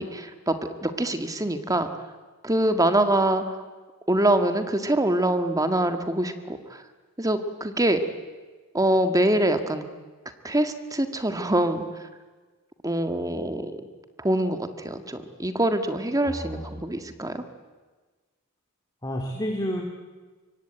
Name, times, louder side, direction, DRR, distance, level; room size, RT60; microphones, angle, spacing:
voice 1, 0.0-1.9 2.4-3.7 4.1-6.8 7.2-8.0 8.7-9.9 10.4-12.1 12.8-13.8 14.2-17.4, right 1 dB, 15° right, 8 dB, 1.8 m, -24 dB
voice 2, 16.2-16.6 19.0-19.8, equal, 20° left, 1 dB, 2.5 m, -30 dB
25.5 x 23.0 x 9.1 m, 1.3 s
head